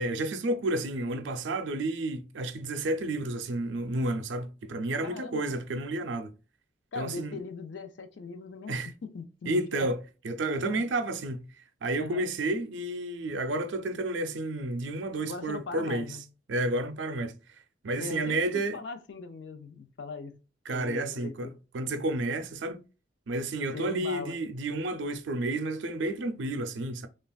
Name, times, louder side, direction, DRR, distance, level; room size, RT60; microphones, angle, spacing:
voice 1, 0.0-6.3 7.0-7.4 8.7-8.9 9.5-10.0 10.2-11.5 11.8-16.1 16.5-17.3 17.8-18.8 20.7-22.8 23.3-27.1, right 2 dB, 90° right, 0.5 m, -31 dB
voice 2, 5.0-5.7 6.9-9.9 10.6-10.9 12.0-12.3 15.2-16.2 18.0-20.4 20.7-21.6 23.7-24.4, left 4 dB, 75° left, 0.5 m, -40 dB
3.2 x 2.4 x 2.3 m
head